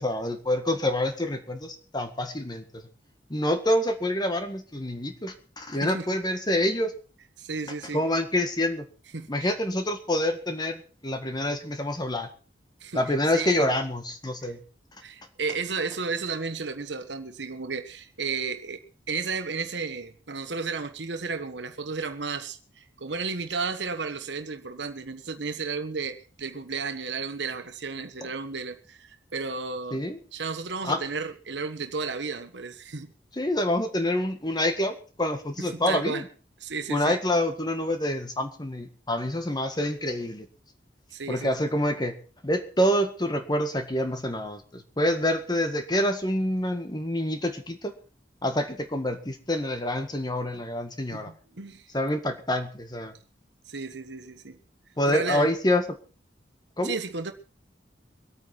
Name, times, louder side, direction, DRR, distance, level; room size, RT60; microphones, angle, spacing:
voice 1, 0.0-2.6 3.3-6.9 7.9-8.8 9.3-12.3 12.9-14.6 29.9-30.2 30.8-31.0 33.3-36.2 36.9-40.5 41.3-42.1 42.4-47.9 48.4-51.3 51.9-53.1 55.0-55.8 56.8-57.0, left 1 dB, 25° left, 1.8 m, -27 dB
voice 2, 7.4-8.0 9.1-9.5 12.8-13.0 13.3-13.7 14.4-14.6 15.0-18.8 19.1-30.0 30.3-33.1 35.6-36.2 36.6-37.2 41.1-41.5 51.3-51.9 53.6-54.6 55.1-55.5 56.8-57.3, right 4 dB, 80° right, 1.2 m, -33 dB
23.5 x 8.9 x 4.5 m
head